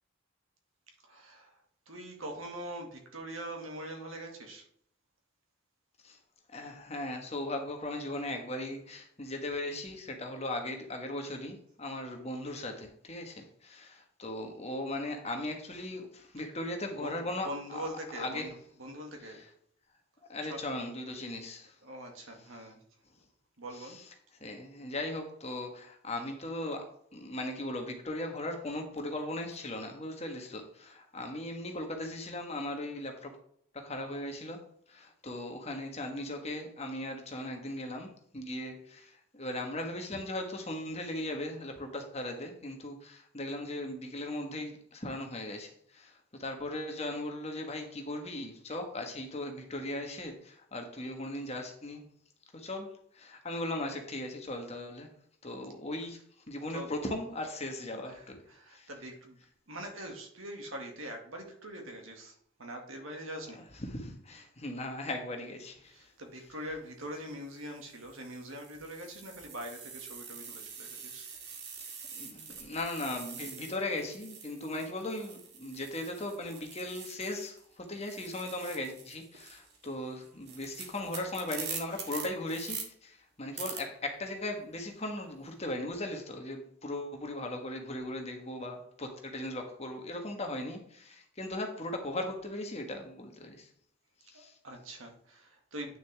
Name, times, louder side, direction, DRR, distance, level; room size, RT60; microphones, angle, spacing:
voice 1, 1.1-1.5 1.9-4.6 17.0-17.1 17.4-18.5 18.8-19.4 20.5-20.6 21.8-22.8 23.6-24.0 56.7-56.9 58.0-58.2 58.5-59.4 59.7-62.3 62.6-63.6 65.9-71.3 72.7-72.8 94.3-96.0, right 1 dB, 75° right, 2 dB, 2.0 m, -43 dB
voice 2, 6.5-18.5 19.2-19.5 20.2-21.8 22.2-22.5 23.7-24.1 24.4-33.3 33.7-34.6 34.9-52.1 52.5-55.1 55.4-56.2 56.5-58.4 58.7-58.9 63.5-66.1 71.7-71.8 72.1-93.7 94.2-94.6, left 1 dB, 30° left, 4 dB, 1.3 m, -38 dB
sound 1, 66.5-66.7 67.5-77.6 77.9-82.8 83.6-83.8, right 6 dB, 55° right, 2.0 m, -45 dB
9.1 x 6.5 x 3.4 m, 0.64 s
head